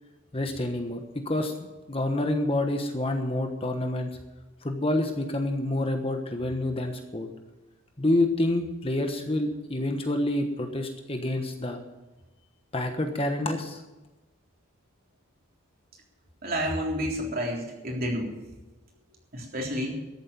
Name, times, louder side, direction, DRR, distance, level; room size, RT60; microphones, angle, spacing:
voice 1, 0.3-1.5 1.9-4.2 4.6-7.3 8.0-11.8 12.7-13.8, left 1 dB, 25° left, 5 dB, 1.2 m, -28 dB
voice 2, 16.4-18.3 19.3-19.9, equal, 45° right, -1 dB, 3.6 m, -30 dB
14.0 x 8.6 x 8.8 m, 1.1 s
head